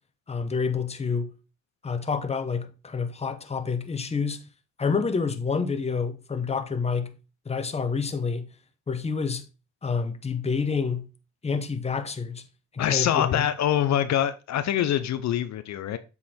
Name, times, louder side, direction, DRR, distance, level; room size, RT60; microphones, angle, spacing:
voice 1, 0.3-1.3 1.8-4.4 4.8-7.2 7.5-8.5 8.9-9.4 9.8-11.1 11.4-12.4 12.7-13.4, left 5 dB, 20° left, 0.9 m, -28 dB
voice 2, 12.8-16.0, left 10 dB, 65° left, 0.7 m, -24 dB
7.6 x 4.1 x 4.3 m
cardioid pair, 90°, 30 cm